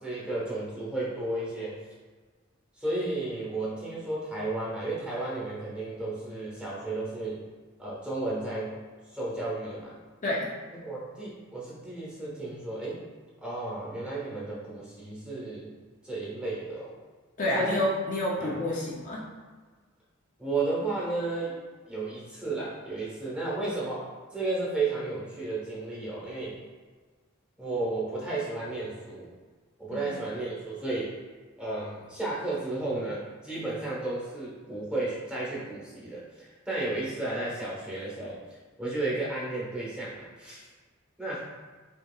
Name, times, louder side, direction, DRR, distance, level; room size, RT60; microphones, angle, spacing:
voice 1, 0.0-1.8 2.8-7.4 7.8-8.8 9.1-10.0 10.8-13.0 13.4-15.7 16.0-16.9 17.5-17.8 18.4-18.6 20.4-21.6 21.9-24.0 24.3-26.6 27.6-29.3 29.8-31.1 31.6-38.4 38.8-40.7 41.2-41.5, right 2 dB, 5° right, -6 dB, 1.1 m, -33 dB
voice 2, 17.4-19.2 29.9-30.0, left 1 dB, 40° left, -4 dB, 0.5 m, -28 dB
5.3 x 2.8 x 2.3 m, 1.4 s
head